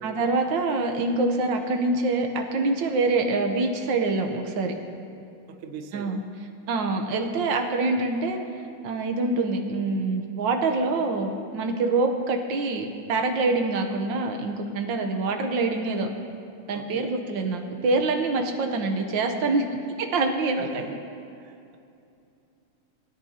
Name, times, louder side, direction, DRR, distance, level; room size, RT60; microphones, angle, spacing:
voice 1, 0.0-4.7 5.9-6.2 6.7-8.4 8.8-16.1 16.7-19.6 20.0-20.8, right 3 dB, 65° right, 4 dB, 1.6 m, -25 dB
voice 2, 5.5-6.2 16.7-17.2 20.6-20.9 21.4-21.8, right 6 dB, 80° right, 7 dB, 0.7 m, -41 dB
20.5 x 10.5 x 2.9 m, 2.6 s
omnidirectional pair, 2.4 m